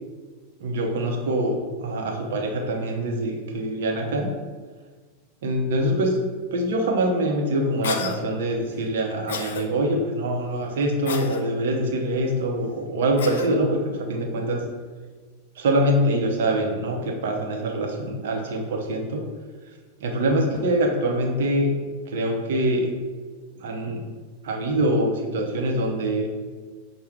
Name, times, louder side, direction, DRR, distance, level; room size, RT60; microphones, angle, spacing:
voice 1, 0.6-1.5 1.8-4.3 5.4-6.2 6.5-14.6 15.5-19.2 20.0-21.7 22.1-22.9 23.6-24.0 24.4-26.3, right 1 dB, 55° right, 0 dB, 0.7 m, -24 dB
Cough, 7.8-8.2 9.3-9.6 11.1-11.4 13.2-13.5, left 5 dB, 60° left, 0.3 m, -30 dB
5.5 x 2.2 x 3.3 m, 1.4 s
figure-of-eight pair, 90°, 0 cm